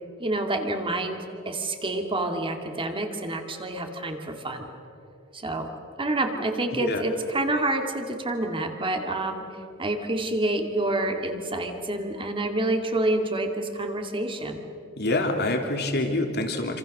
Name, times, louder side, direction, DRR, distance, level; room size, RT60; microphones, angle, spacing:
voice 1, 0.2-4.7 5.3-5.7 6.0-9.5 9.8-14.6, right 2 dB, 25° right, 4 dB, 2.4 m, -28 dB
voice 2, 15.0-16.8, left 2 dB, 55° left, 4 dB, 3.0 m, -26 dB
27.0 x 26.5 x 6.7 m, 2.8 s
head